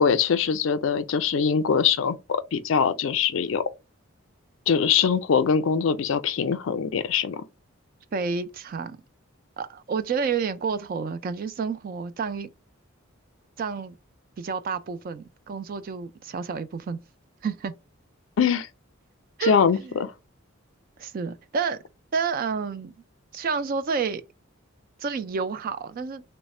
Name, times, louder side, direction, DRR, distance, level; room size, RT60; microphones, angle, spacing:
voice 1, 0.0-3.6 4.7-7.4 18.4-18.7 19.4-20.1, left 6 dB, 65° left, 0.4 m, -23 dB
voice 2, 8.1-9.0 9.6-12.5 13.6-14.0 14.4-17.0 17.4-17.7 19.4-19.5 19.8-19.9 21.0-21.8 22.1-22.9 23.3-24.2 25.0-26.2, right 5 dB, 45° right, 0.3 m, -29 dB
3.2 x 2.1 x 4.1 m
head